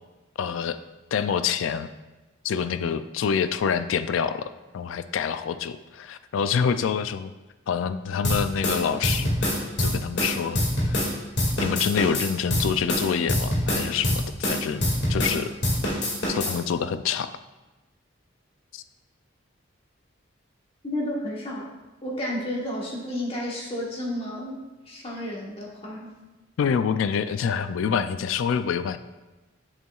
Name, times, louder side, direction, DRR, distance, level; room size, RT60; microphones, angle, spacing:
voice 1, 0.4-0.8 1.1-1.9 2.4-7.3 7.7-10.6 10.9-11.0 11.6-15.5 16.3-17.3 18.7-18.8 26.6-29.0, left 7 dB, 85° left, 11 dB, 0.3 m, -26 dB
sound 1, 8.2-11.1 11.4-15.4 15.6-16.6, left 1 dB, 60° left, 2.0 m, -24 dB
voice 2, 20.8-21.7 22.0-24.5 24.9-26.1, left 1 dB, 30° left, -2 dB, 1.3 m, -31 dB
8.1 x 7.4 x 2.3 m, 1.1 s
head